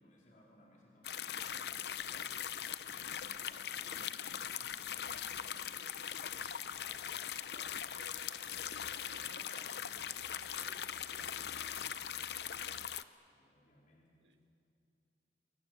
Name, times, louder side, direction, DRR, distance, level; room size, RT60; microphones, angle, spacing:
voice 1, 0.0-2.4 2.8-7.3 13.3-14.4, left 1 dB, 45° left, -3 dB, 4.4 m, -64 dB
sound 1, 1.0-13.0, left 9 dB, 70° left, 0.7 m, -41 dB
Dog, 3.7-9.0, right 1 dB, 60° right, 3.3 m, -69 dB
voice 2, 7.9-12.6 14.2-14.4, right 3 dB, 90° right, 7 dB, 1.8 m, -60 dB
28.5 x 23.0 x 8.0 m, 2.5 s
head